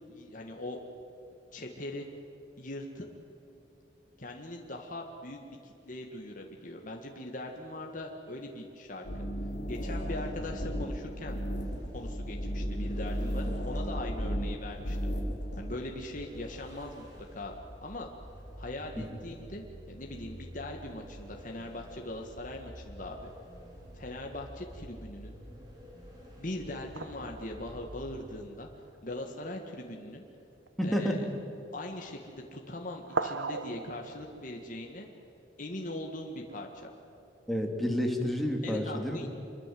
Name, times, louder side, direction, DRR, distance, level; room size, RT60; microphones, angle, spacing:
voice 1, 0.1-0.8 1.5-2.1 2.6-3.0 4.2-9.1 9.7-11.4 11.9-15.1 15.6-17.0 17.3-17.5 17.8-18.1 18.6-23.3 23.9-25.4 26.4-28.7 29.0-30.2 30.8-31.3 31.7-35.1 35.6-36.9 38.6-39.3, left 1 dB, 45° left, 1 dB, 1.9 m, -41 dB
sound 1, 9.0-15.6, equal, 65° left, 4.9 m, -34 dB
sound 2, 11.6-28.3, equal, 20° right, 5.1 m, -49 dB
sound 3, 23.7-24.9 27.0-29.2 30.1-30.2 30.5-31.3 32.2-32.6 32.9-34.7, right 4 dB, 75° right, 1.1 m, -40 dB
voice 2, 30.8-31.2 37.5-39.2, equal, ahead, 1 dB, 2.8 m, -30 dB
26.0 x 23.0 x 7.8 m, 2.8 s
head